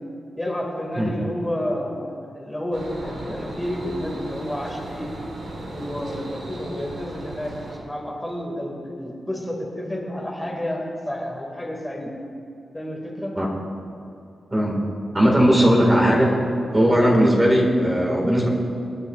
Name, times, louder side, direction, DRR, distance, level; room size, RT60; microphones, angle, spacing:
voice 1, 0.4-5.1 5.6-7.5 7.8-12.1 12.7-13.3, left 1 dB, 10° left, -1 dB, 2.0 m, -30 dB
sound 1, 2.7-7.8, right 1 dB, 85° right, 3.3 m, -36 dB
voice 2, 14.5-14.8 15.1-16.4 16.7-18.5, equal, 15° right, -2 dB, 1.8 m, -18 dB
27.0 x 10.5 x 2.4 m, 2.7 s
wide cardioid pair, 140°, 0 cm